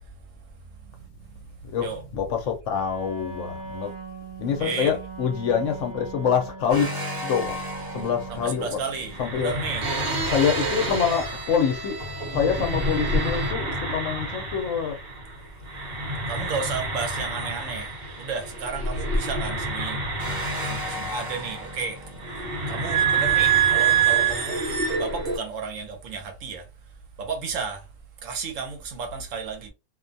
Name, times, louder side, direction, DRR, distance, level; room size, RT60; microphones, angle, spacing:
voice 1, 0.8-1.4 1.8-2.0 4.6-5.0 8.3-9.9 16.3-20.0 20.6-22.0 22.7-24.6 24.9-26.7 27.2-27.9 28.2-29.7, right 5 dB, 75° right, 1.0 m, -33 dB
voice 2, 2.1-3.9 4.4-6.9 7.2-7.5 7.9-8.8 9.2-9.5 10.3-12.0 12.3-15.0, left 7 dB, 70° left, 0.9 m, -25 dB
Wind instrument woodwind instrument, 2.7-8.8, right 4 dB, 15° right, 0.9 m, -39 dB
sound 1, 6.7-15.4 15.6-25.4, right 4 dB, 50° right, 0.9 m, -27 dB
2.5 x 2.2 x 2.6 m
omnidirectional pair, 1.4 m